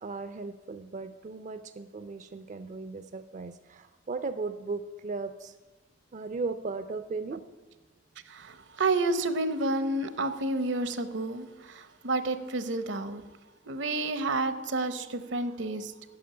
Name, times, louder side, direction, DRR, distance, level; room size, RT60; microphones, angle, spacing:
voice 1, 0.0-5.6 6.1-7.4, right 4 dB, 40° right, 10 dB, 0.4 m, -36 dB
voice 2, 8.3-13.2 13.7-15.9, right 2 dB, 75° right, 11 dB, 0.8 m, -30 dB
8.6 x 7.3 x 8.6 m, 1.2 s
head